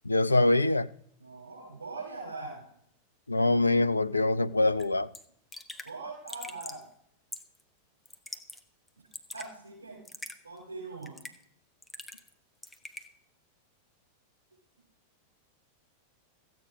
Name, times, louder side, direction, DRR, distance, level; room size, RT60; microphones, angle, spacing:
voice 1, 0.1-0.9 3.3-5.1, left 2 dB, 80° left, 0.4 m, -24 dB
voice 2, 1.2-2.6 5.8-6.8 9.3-10.0 10.4-11.2, right 3 dB, 75° right, 5.9 m, -41 dB
Raindrop / Drip, 4.8-4.9 5.1-5.2 5.5-5.9 6.3-6.8 7.3-7.6 8.1-8.6 8.9-9.5 10.1-10.4 11.0-11.4 11.8-12.3 12.6-13.1, left 2 dB, 5° left, 1.2 m, -43 dB
14.5 x 9.2 x 5.2 m
figure-of-eight pair, 90°, 0 cm